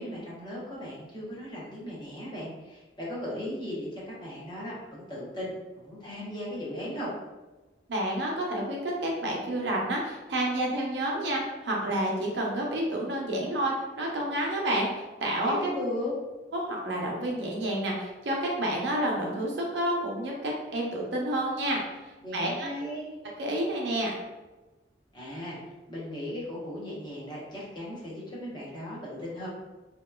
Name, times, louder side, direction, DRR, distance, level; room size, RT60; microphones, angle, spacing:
voice 1, 0.0-7.1 15.4-16.1 22.2-23.1 25.1-25.6 25.9-29.5, left 1 dB, 25° left, -7 dB, 0.8 m, -37 dB
voice 2, 7.9-15.7 16.5-21.8 22.3-22.7 23.4-24.2, right 1 dB, 75° right, -2 dB, 0.6 m, -29 dB
2.8 x 2.3 x 2.2 m, 1.1 s
head